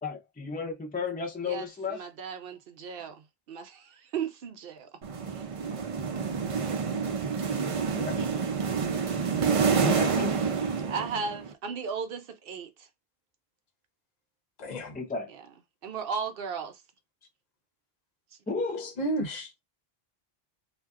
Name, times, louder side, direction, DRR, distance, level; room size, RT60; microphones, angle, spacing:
voice 1, 0.0-2.0 7.9-8.3 9.8-10.4 14.9-15.3 18.5-18.9, left 4 dB, 10° left, 0.4 m, -33 dB
voice 2, 1.4-5.0 5.3-5.5 8.2-8.4 10.3-10.5 10.9-12.9 15.3-15.4 15.8-16.8, right 6 dB, 70° right, 0.8 m, -36 dB
sound 1, 5.0-11.5, right 5 dB, 45° right, 0.5 m, -28 dB
voice 3, 14.6-15.0 18.8-19.6, right 1 dB, 50° left, 0.8 m, -32 dB
2.4 x 2.2 x 3.5 m
omnidirectional pair, 1.0 m